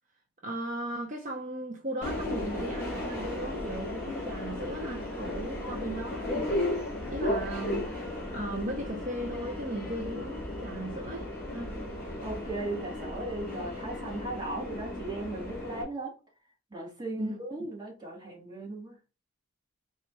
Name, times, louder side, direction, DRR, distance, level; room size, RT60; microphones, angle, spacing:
voice 1, 0.4-11.7 17.2-17.4, right 1 dB, 40° right, 0.7 m, -37 dB
Subway metro underground, 2.0-15.8, left 1 dB, 10° left, 1.7 m, -35 dB
voice 2, 12.2-16.1 16.7-19.0, right 2 dB, 20° right, 1.5 m, -37 dB
4.2 x 2.4 x 4.2 m
head